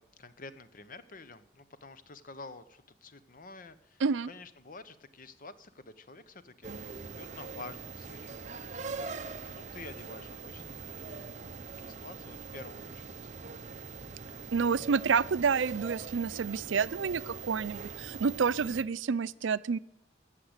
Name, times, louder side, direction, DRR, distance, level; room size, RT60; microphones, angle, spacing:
voice 1, 0.0-8.5 8.9-11.3 11.8-13.2, left 3 dB, 45° left, 13 dB, 0.8 m, -49 dB
sound 1, 6.6-18.8, right 4 dB, 40° right, 0.7 m, -42 dB
voice 2, 14.5-19.8, right 5 dB, 85° right, 17 dB, 0.5 m, -29 dB
14.5 x 7.5 x 8.0 m, 0.80 s
head